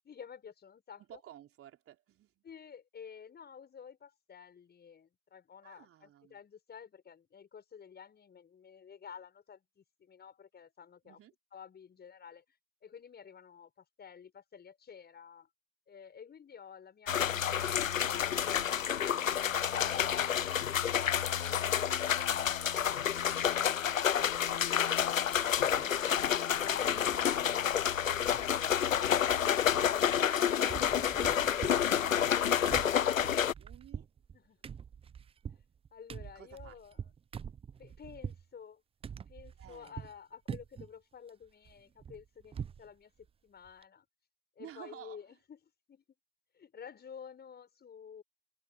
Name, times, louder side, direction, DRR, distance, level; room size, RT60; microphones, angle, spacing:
voice 1, 0.0-1.2 2.4-11.2 11.5-12.4 12.8-15.5 15.9-22.2 22.7-23.3 28.1-28.4 34.3-34.6 35.9-37.0 37.8-38.8 39.3-43.1 43.4-44.1 44.6-45.6 45.9-46.0 46.5-48.2, left 7 dB, 25° left, 7.4 m, -52 dB
voice 2, 1.0-2.4 5.6-6.4 11.0-11.3 23.3-23.5 23.9-24.1 24.3-24.9 25.4-26.0 26.4-26.6 27.3-27.5 29.6-29.9 31.8-34.1 36.3-36.8 39.6-40.1 44.6-45.2, right 11 dB, 35° right, 3.7 m, -54 dB
sound 1, 17.1-33.5, left 9 dB, 90° left, 0.8 m, -29 dB
sound 2, 25.7-26.1 26.5-27.3 27.6-27.7 27.9-28.8 29.0-30.4 30.7-38.5 39.0-40.2 40.5-40.9 41.3-42.9 43.2-43.3 43.6-43.8, right 7 dB, 15° right, 0.6 m, -45 dB
hypercardioid pair, 90°, 38 cm